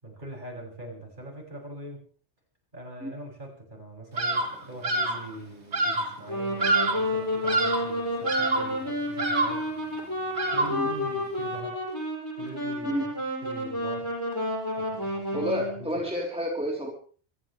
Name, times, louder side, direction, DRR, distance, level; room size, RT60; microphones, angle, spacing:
voice 1, 0.0-2.0 2.7-9.7 10.5-11.8 12.4-13.1 13.4-14.1 14.7-16.1, right 1 dB, 45° right, 0 dB, 7.2 m, -42 dB
Bird vocalization bird call bird song, 4.2-4.6 4.8-5.3 5.7-6.2 6.6-7.1 7.4-7.9 8.3-8.8 9.2-9.7 10.3-10.9, right 2 dB, 75° right, 2.5 m, -26 dB
Wind instrument woodwind instrument, 6.2-15.9, left 1 dB, 20° left, 7.7 m, -31 dB
voice 2, 15.3-16.9, equal, 5° right, -1 dB, 3.6 m, -30 dB
25.5 x 15.0 x 3.3 m, 0.40 s
omnidirectional pair, 1.1 m